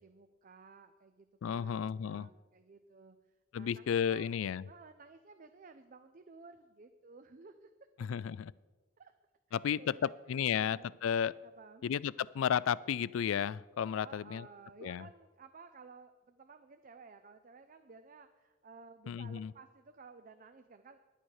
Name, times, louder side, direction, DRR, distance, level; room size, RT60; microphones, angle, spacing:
voice 1, 0.0-4.3 4.7-7.7 9.0-9.1 9.6-10.2 10.5-11.9 14.0-21.0, right 4 dB, 45° right, 9 dB, 0.5 m, -55 dB
voice 2, 1.4-2.3 3.5-4.6 8.0-8.5 9.5-11.3 11.8-14.5 14.8-15.0 19.1-19.5, left 8 dB, 80° left, 21 dB, 0.3 m, -33 dB
11.0 x 8.9 x 6.5 m, 1.2 s
head